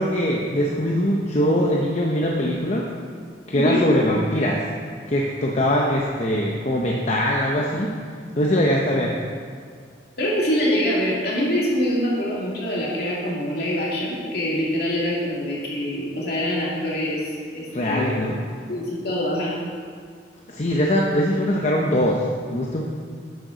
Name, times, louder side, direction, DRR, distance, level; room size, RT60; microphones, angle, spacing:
voice 1, 0.0-2.9 3.5-4.7 5.1-7.9 8.3-9.2 17.7-18.4 20.5-22.8, equal, 35° left, -1 dB, 0.8 m, -22 dB
voice 2, 3.5-3.9 10.2-18.1 18.7-19.5, equal, 55° left, -5 dB, 2.5 m, -24 dB
11.0 x 8.1 x 4.0 m, 2.1 s
head